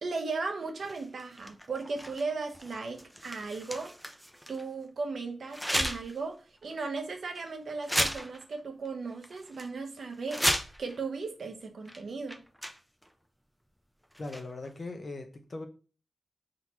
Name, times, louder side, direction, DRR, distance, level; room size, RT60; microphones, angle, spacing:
voice 1, 0.0-3.9 4.5-10.5 10.8-12.4, right 4 dB, 65° right, 0.8 m, -36 dB
sound 1, 0.8-4.6 5.5-6.2 6.6-6.7 7.3-7.5 7.8-8.6 8.8-8.9 9.2-9.7 10.1-11.0 11.8-12.0 12.3-13.1 14.1-14.7, equal, ahead, 0.5 m, -34 dB
voice 2, 14.2-15.7, left 2 dB, 40° left, 0.8 m, -39 dB
4.6 x 3.7 x 2.9 m
wide cardioid pair, 165°, 0 cm